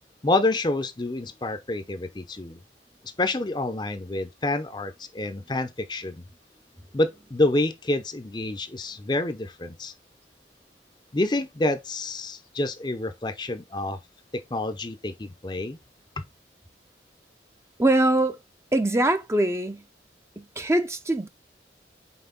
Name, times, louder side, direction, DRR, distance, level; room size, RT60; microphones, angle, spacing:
voice 1, 0.2-2.6 3.2-6.2 6.9-9.9 11.1-14.0 14.3-15.8 16.2-16.3, left 2 dB, 25° left, 0.6 m, -28 dB
voice 2, 17.8-18.4 18.7-19.8 20.4-21.3, right 1 dB, 15° right, 0.5 m, -23 dB
5.7 x 4.4 x 3.9 m
head